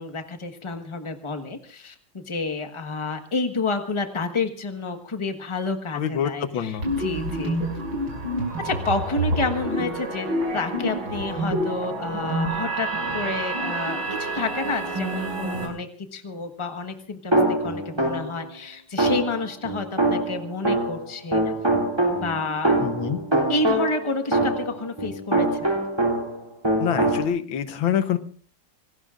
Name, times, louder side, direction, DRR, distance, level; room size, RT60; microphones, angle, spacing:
voice 1, 0.0-7.6 8.6-10.3 10.5-12.9 13.1-21.4 22.2-22.8 23.5-25.7, left 3 dB, 15° left, 6 dB, 1.2 m, -29 dB
voice 2, 5.9-6.9 22.8-23.2 26.8-28.2, left 9 dB, 90° left, 11 dB, 1.8 m, -26 dB
sound 1, 6.8-15.7, right 1 dB, 85° right, 6.9 m, -28 dB
sound 2, 17.3-18.4 19.0-21.1 21.3-26.4 26.6-27.2, right 1 dB, 15° right, 2.9 m, -23 dB
26.5 x 19.0 x 2.5 m, 0.42 s
omnidirectional pair, 2.1 m